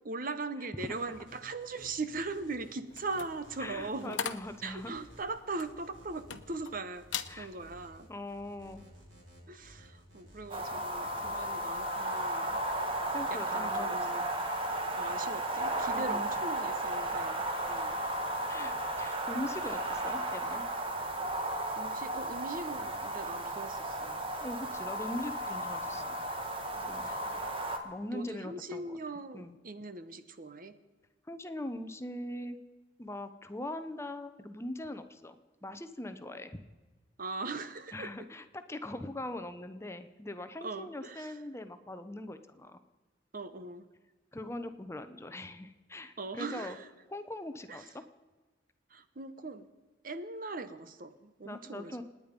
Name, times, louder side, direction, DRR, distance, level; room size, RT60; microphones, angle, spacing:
voice 1, 0.0-4.2 4.6-8.1 9.5-12.6 13.3-14.2 15.0-18.0 21.5-24.2 26.8-27.2 28.1-30.7 37.2-38.1 40.6-41.4 43.3-43.9 46.2-46.9 47.7-47.9 48.9-49.7 50.0-52.0, right 3 dB, 50° right, 11 dB, 1.0 m, -40 dB
sound 1, 0.8-11.4, equal, 85° right, 7.2 m, -56 dB
sound 2, 2.9-6.7 7.0-7.4 7.8-8.1, left 7 dB, 85° left, 1.0 m, -40 dB
voice 2, 3.6-4.9 7.3-7.5 8.1-8.9 13.1-14.3 15.9-16.3 18.5-20.6 24.4-26.2 26.9-27.3 27.8-29.0 29.3-29.5 31.3-32.6 33.0-35.4 35.6-36.6 37.9-42.8 44.3-46.8 47.1-48.0 51.4-52.0, left 1 dB, 15° left, 9 dB, 0.8 m, -41 dB
sound 3, 10.5-27.8, right 1 dB, 30° right, 1.6 m, -34 dB
27.5 x 9.8 x 5.3 m, 1.3 s
head